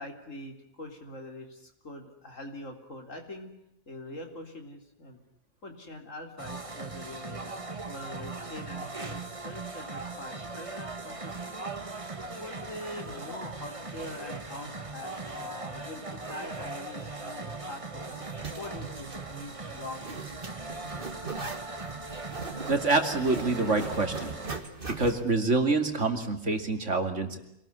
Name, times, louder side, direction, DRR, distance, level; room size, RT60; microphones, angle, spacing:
voice 1, 0.0-3.5 3.9-5.2 5.6-7.5 7.9-11.6 12.3-18.2 18.5-20.3, left 1 dB, 70° left, 5 dB, 4.1 m, -43 dB
sound 1, 6.4-24.6, right 3 dB, 25° right, 1.7 m, -39 dB
Zipper (clothing), 18.1-25.3, right 4 dB, 40° right, 2.3 m, -41 dB
voice 2, 22.7-24.4 24.9-27.4, right 3 dB, 65° right, 6 dB, 3.0 m, -26 dB
26.5 x 19.5 x 9.8 m, 0.79 s
omnidirectional pair, 1.4 m